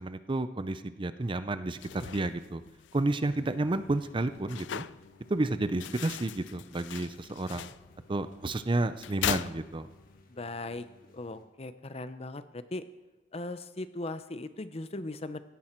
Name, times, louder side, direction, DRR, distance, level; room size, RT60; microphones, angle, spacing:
voice 1, 0.0-2.6 2.9-4.8 5.3-7.7 8.1-9.9, right 2 dB, 25° right, 12 dB, 0.5 m, -31 dB
sound 1, 1.6-10.2, left 10 dB, 75° left, 0.4 m, -40 dB
sound 2, 3.2-11.5, left 1 dB, 50° left, 1.7 m, -58 dB
voice 2, 10.3-10.8 11.1-12.8 13.3-15.4, left 2 dB, 35° left, 12 dB, 0.6 m, -38 dB
16.5 x 13.5 x 4.5 m, 1.1 s
head